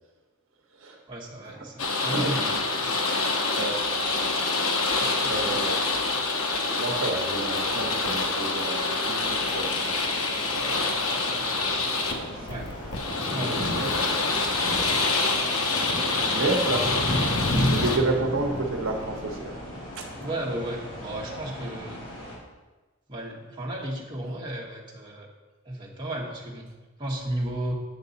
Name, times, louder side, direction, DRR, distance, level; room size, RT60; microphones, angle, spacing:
voice 1, 1.1-2.9 5.0-5.5 6.1-6.2 12.5-12.7 13.3-15.0 16.2-16.8 20.2-22.0 23.1-25.3 25.6-26.7 27.0-27.7, right 1 dB, 20° right, -4 dB, 1.4 m, -35 dB
sound 1, 1.8-18.0, left 3 dB, 90° left, 1.1 m, -26 dB
voice 2, 2.1-2.5 3.6-3.8 5.3-5.8 6.7-9.2 9.5-10.0 10.5-11.5 13.2-13.3 13.8-14.2 15.8-16.9 17.7-19.5 20.0-20.1, right 2 dB, 65° right, 2 dB, 1.1 m, -30 dB
sound 2, 9.1-22.3, equal, 60° left, 3.1 m, -34 dB
9.1 x 6.6 x 4.1 m, 1.2 s
head